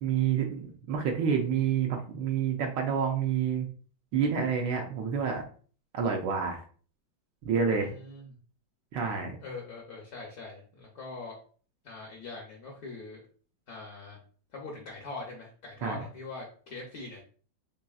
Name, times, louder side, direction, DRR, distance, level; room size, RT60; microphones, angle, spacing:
voice 1, 0.0-3.7 4.1-5.4 5.9-6.6 7.4-7.9 8.9-9.4 15.8-16.0, right 7 dB, 75° right, 2 dB, 1.1 m, -28 dB
voice 2, 7.7-8.4 9.4-11.4 11.8-13.2 13.7-14.2 14.5-17.3, left 3 dB, 65° left, -2 dB, 0.9 m, -42 dB
4.0 x 3.2 x 2.3 m, 0.42 s
omnidirectional pair, 2.3 m